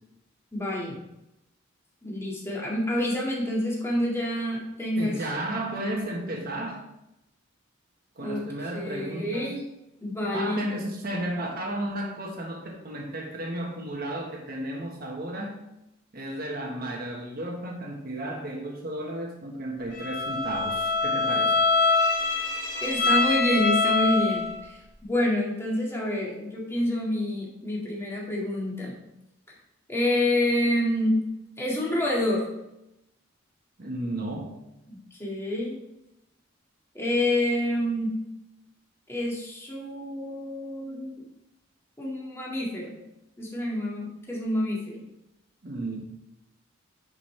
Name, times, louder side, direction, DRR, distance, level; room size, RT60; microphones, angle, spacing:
voice 1, 0.5-1.0 2.0-5.3 8.2-8.5 8.7-9.6 10.0-10.6 22.8-29.0 29.9-31.2 31.6-32.4 34.9-35.8 36.9-38.2 39.1-41.2 42.0-43.0 43.4-45.0, left 1 dB, 15° left, -3 dB, 1.9 m, -28 dB
voice 2, 5.0-6.8 8.2-9.5 10.3-15.5 16.1-21.6 33.8-34.5 45.6-46.0, right 1 dB, 50° right, 0 dB, 1.3 m, -33 dB
Bowed string instrument, 19.9-24.6, left 3 dB, 60° left, 3.1 m, -24 dB
9.7 x 5.4 x 3.3 m, 0.87 s
head